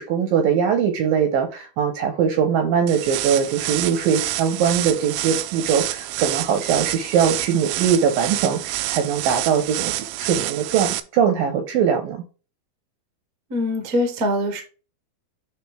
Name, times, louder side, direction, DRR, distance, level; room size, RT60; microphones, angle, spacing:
voice 1, 0.0-9.9 10.2-12.2, right 7 dB, 70° right, 2.3 m, -21 dB
sound 1, 2.9-11.0, right 16 dB, 90° right, 3.0 m, -28 dB
voice 2, 13.5-14.6, left 1 dB, 50° right, 1.0 m, -23 dB
11.0 x 3.8 x 3.4 m
omnidirectional pair, 5.2 m